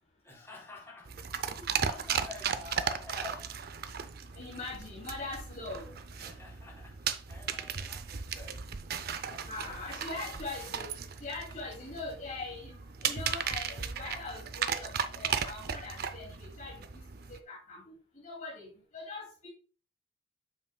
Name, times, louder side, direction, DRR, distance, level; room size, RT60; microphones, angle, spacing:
voice 1, 0.2-3.6 6.2-8.7 9.2-10.4, left 3 dB, 15° left, 3.5 m, -50 dB
sound 1, 1.1-17.4, right 7 dB, 55° right, 0.6 m, -36 dB
voice 2, 4.3-5.9 9.5-17.0 17.3-19.5, left 3 dB, 45° left, 2.5 m, -42 dB
9.1 x 7.2 x 2.3 m
head